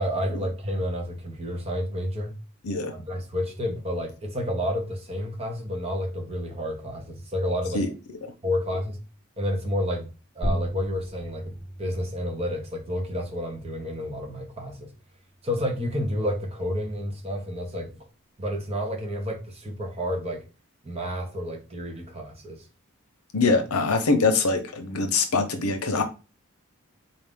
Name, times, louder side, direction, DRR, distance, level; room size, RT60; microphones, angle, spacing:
voice 1, 0.0-2.3 2.9-7.8 8.4-9.0 9.4-10.1 10.3-11.5 11.8-14.9 15.4-17.9 18.4-20.4 20.8-22.6, equal, 25° right, 0.8 m, -30 dB
sound 1, 10.4-15.5, equal, 10° left, 0.7 m, -36 dB
voice 2, 23.3-26.0, left 3 dB, 90° left, 0.7 m, -23 dB
3.9 x 2.5 x 3.6 m
head